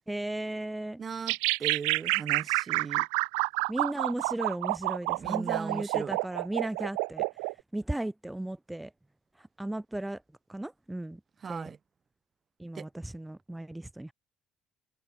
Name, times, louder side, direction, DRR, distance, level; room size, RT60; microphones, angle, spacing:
voice 1, 0.1-1.0 3.7-7.3 7.7-8.9 9.4-10.2 10.5-11.2 11.5-11.7 12.6-14.1, right 1 dB, 10° right, 1.0 m, -35 dB
voice 2, 1.0-3.1 5.2-6.2 11.4-11.8 12.7-12.9, right 6 dB, 45° right, 2.1 m, -38 dB
sound 1, 1.3-7.5, right 40 dB or more, 80° right, 1.4 m, -29 dB
hypercardioid pair, 55°, 0 cm